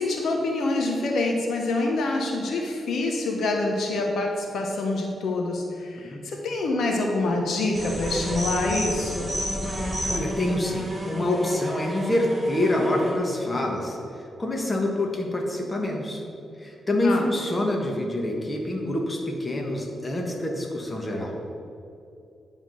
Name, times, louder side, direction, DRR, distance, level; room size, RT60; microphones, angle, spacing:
voice 1, 0.0-9.4 17.0-17.3, left 2 dB, 75° left, 1 dB, 1.0 m, -26 dB
sound 1, 7.7-13.1, equal, 10° right, 1.7 m, -31 dB
voice 2, 10.1-14.0 14.4-16.2 16.6-21.4, left 1 dB, 25° left, 0 dB, 1.4 m, -26 dB
10.5 x 3.7 x 6.4 m, 2.7 s
cardioid pair, 95°, 0 cm